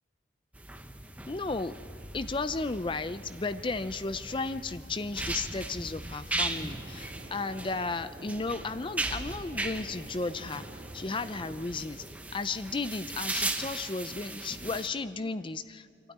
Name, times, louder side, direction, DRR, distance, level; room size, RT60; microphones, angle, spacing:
sound 1, 0.5-14.9, right 2 dB, 10° right, 1.0 m, -38 dB
voice 1, 1.3-1.7 2.1-10.6 10.9-12.0 12.3-15.9, left 3 dB, 25° left, 13 dB, 0.5 m, -34 dB
sound 2, 6.5-11.6, right 1 dB, 35° right, 1.6 m, -49 dB
27.0 x 13.0 x 9.5 m, 2.2 s
head